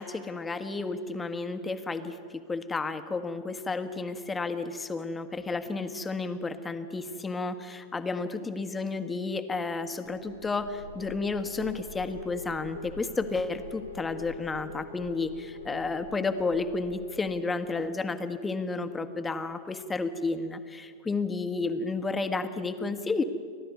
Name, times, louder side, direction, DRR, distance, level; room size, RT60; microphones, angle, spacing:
voice 1, 0.0-2.2 2.5-23.2, left 3 dB, 15° left, 9 dB, 1.4 m, -32 dB
sound 1, 10.0-17.8, left 3 dB, 90° left, 1.5 m, -43 dB
30.0 x 12.5 x 9.5 m, 2.1 s
figure-of-eight pair, 90°, 0 cm